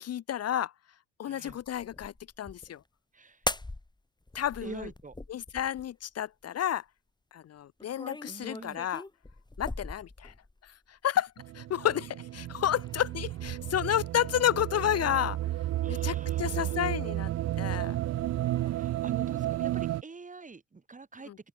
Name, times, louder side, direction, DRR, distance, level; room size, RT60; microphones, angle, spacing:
voice 1, 0.0-0.7 1.2-2.8 4.3-4.9 5.3-6.8 7.3-9.0 9.6-10.3 10.6-15.4 15.9-17.3 17.6-18.0 21.3-21.4, left 10 dB, 55° left, 0.8 m, -31 dB
voice 2, 1.3-1.6 3.1-3.4 4.6-5.2 8.3-8.8 15.8-16.8 18.7-21.3, right 4 dB, 25° right, 3.0 m, -46 dB
sound 1, 1.5-2.8 3.4-4.0 4.3-6.0 7.8-10.7 11.9-12.4 12.8-13.9 15.1-17.1 17.4-18.9, left 2 dB, 15° left, 4.0 m, -42 dB
sound 2, 11.4-20.0, right 14 dB, 55° right, 0.4 m, -32 dB
open air
cardioid pair, 90°, 30 cm